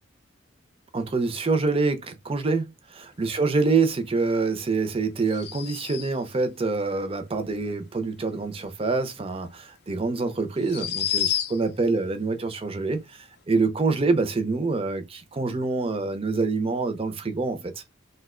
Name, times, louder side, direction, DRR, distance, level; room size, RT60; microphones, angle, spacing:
voice 1, 0.9-2.7 3.2-17.8, right 3 dB, 30° right, 0.5 m, -26 dB
sound 1, 5.2-6.3 9.4-9.5 10.6-11.8, left 10 dB, 55° left, 0.4 m, -29 dB
2.6 x 2.1 x 3.6 m
head